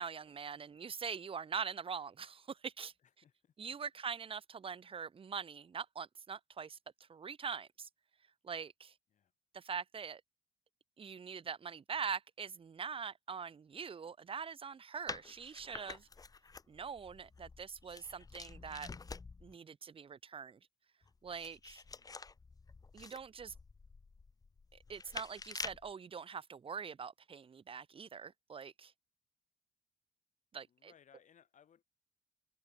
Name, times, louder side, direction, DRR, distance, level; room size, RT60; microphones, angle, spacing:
voice 1, 0.0-2.9 3.6-6.8 7.1-7.9 8.4-8.9 9.5-10.2 11.0-16.1 16.7-18.9 19.4-20.6 21.2-21.8 22.9-23.5 24.9-28.9 30.5-30.9, right 6 dB, 35° right, 2.3 m, -43 dB
voice 2, 3.0-4.0 9.1-9.3 21.9-22.2 30.7-31.8, left 8 dB, 45° left, 6.9 m, -66 dB
sound 1, 15.1-19.6 21.0-25.9, left 4 dB, 20° left, 1.4 m, -48 dB
cardioid pair, 110°, 17 cm